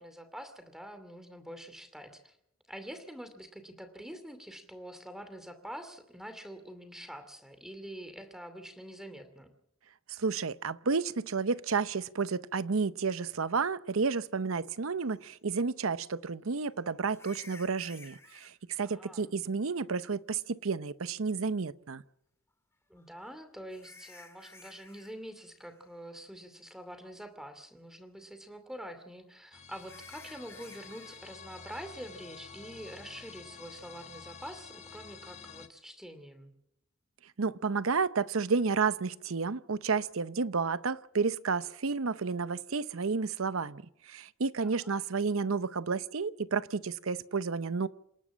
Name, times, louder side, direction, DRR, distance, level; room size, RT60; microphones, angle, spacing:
voice 1, 0.0-2.4 2.7-9.5 18.8-19.3 22.9-36.5 44.6-45.0, equal, ahead, 2.5 m, -46 dB
voice 2, 10.1-22.0 37.4-47.9, right 4 dB, 80° right, 0.7 m, -31 dB
sound 1, 15.2-15.3 17.1-18.5 20.3-20.4 23.0-25.1 25.4-25.7 26.2-26.3 26.8-26.9 29.7-31.2, left 3 dB, 15° left, 1.9 m, -54 dB
sound 2, 29.5-35.7, left 6 dB, 35° left, 1.2 m, -49 dB
27.5 x 11.5 x 8.7 m
head